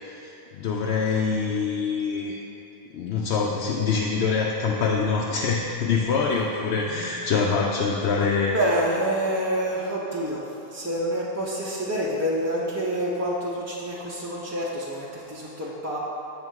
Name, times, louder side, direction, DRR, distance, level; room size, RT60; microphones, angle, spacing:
voice 1, 0.0-2.4 2.9-8.5, left 5 dB, 80° left, -2 dB, 0.8 m, -25 dB
voice 2, 8.4-16.0, equal, 20° right, -5 dB, 0.5 m, -27 dB
7.8 x 3.6 x 6.2 m, 3.0 s
omnidirectional pair, 1.0 m